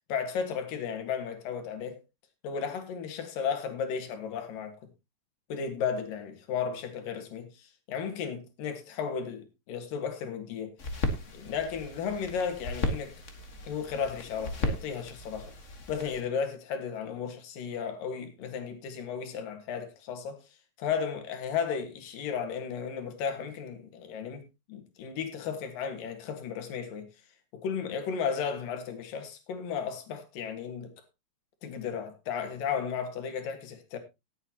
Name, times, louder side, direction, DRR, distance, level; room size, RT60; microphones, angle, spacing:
voice 1, 0.1-2.0 2.4-4.9 5.5-10.8 11.3-13.2 13.6-15.5 15.9-20.4 20.8-27.1 27.6-30.9 31.6-34.0, left 7 dB, 80° left, 3.4 m, -34 dB
sound 1, 10.8-16.2, left 1 dB, 50° left, 0.9 m, -35 dB
18.5 x 8.2 x 2.9 m
omnidirectional pair, 3.9 m